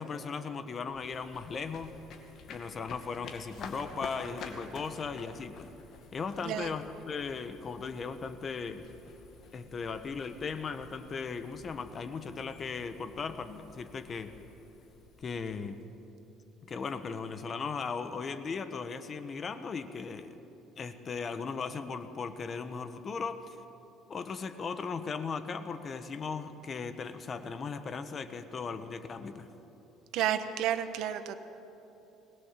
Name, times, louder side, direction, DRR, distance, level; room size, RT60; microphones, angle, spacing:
voice 1, 0.0-1.9 2.5-5.7 6.1-8.9 9.5-14.3 15.2-15.8 16.6-20.3 20.8-23.4 24.1-29.5, left 5 dB, 30° left, 10 dB, 1.2 m, -37 dB
sound 1, 0.9-16.0, left 5 dB, 50° left, 2.3 m, -50 dB
voice 2, 30.1-31.4, right 10 dB, 70° right, 10 dB, 1.3 m, -31 dB
21.5 x 20.0 x 7.5 m, 3.0 s
cardioid pair, 140°, 0 cm